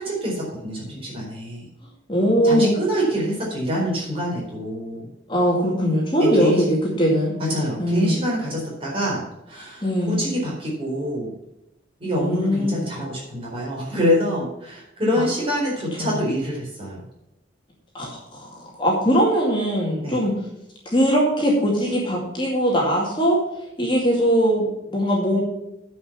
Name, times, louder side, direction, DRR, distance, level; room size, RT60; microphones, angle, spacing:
voice 1, 0.0-1.7 2.4-5.1 6.2-6.6 7.4-11.3 12.0-17.1 20.0-20.2, equal, 30° right, -4 dB, 4.3 m, -26 dB
voice 2, 2.1-2.7 5.3-7.3 7.8-8.2 9.8-10.2 12.2-12.8 15.2-15.3 16.0-16.1 17.9-20.3 20.9-23.4 23.8-25.4, equal, 25° left, -3 dB, 2.2 m, -21 dB
9.7 x 5.6 x 7.3 m, 0.87 s
head